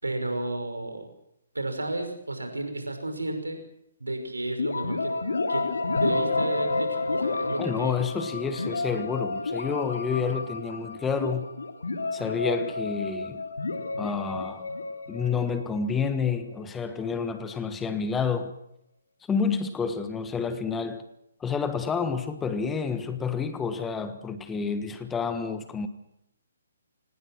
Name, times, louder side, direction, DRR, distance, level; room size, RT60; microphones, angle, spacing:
voice 1, 0.0-1.1 1.5-3.6 4.0-5.2 5.5-7.9 8.6-8.8, right 2 dB, 80° right, 6 dB, 5.5 m, -32 dB
sound 1, 4.6-16.3, left 3 dB, 70° left, 2.9 m, -30 dB
voice 2, 7.6-11.5 12.1-13.4 14.0-14.7 15.1-18.5 19.3-21.0 21.4-25.9, left 5 dB, 10° left, 10 dB, 1.4 m, -29 dB
25.0 x 19.5 x 6.2 m, 0.78 s
figure-of-eight pair, 130°, 0 cm